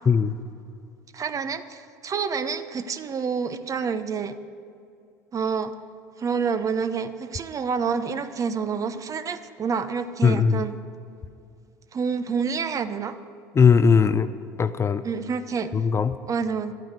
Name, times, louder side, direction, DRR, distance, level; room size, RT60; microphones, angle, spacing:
voice 1, 1.1-4.4 5.3-5.7 6.2-10.8 11.9-13.2 15.0-15.7 16.3-16.7, right 6 dB, 35° right, 10 dB, 0.8 m, -28 dB
voice 2, 10.2-10.6 13.5-14.3 14.6-15.0 15.7-16.1, left 6 dB, 25° left, 12 dB, 0.6 m, -19 dB
12.0 x 9.4 x 8.0 m, 2.5 s
hypercardioid pair, 75°, 10 cm